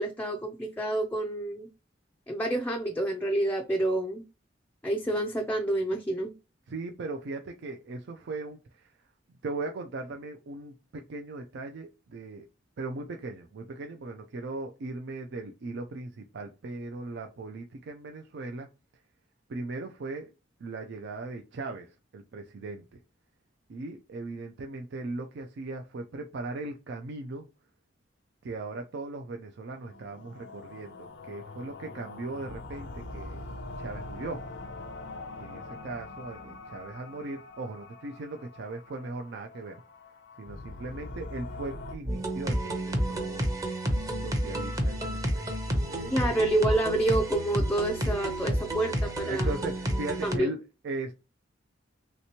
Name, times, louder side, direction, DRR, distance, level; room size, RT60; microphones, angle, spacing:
voice 1, 0.0-1.7 2.3-4.2 4.8-6.3 46.1-49.6 50.2-50.5, right 1 dB, 10° left, 0.4 m, -28 dB
voice 2, 6.7-8.9 9.4-12.5 12.8-18.7 19.5-20.3 20.6-23.0 23.7-27.5 28.4-33.4 33.8-34.4 35.4-39.8 40.4-43.5 44.2-46.4 49.3-51.1, right 3 dB, 65° right, 0.4 m, -38 dB
sound 1, 29.7-42.0, left 2 dB, 65° left, 0.5 m, -43 dB
sound 2, 42.0-50.4, equal, 20° right, 0.7 m, -30 dB
3.2 x 2.9 x 2.8 m
head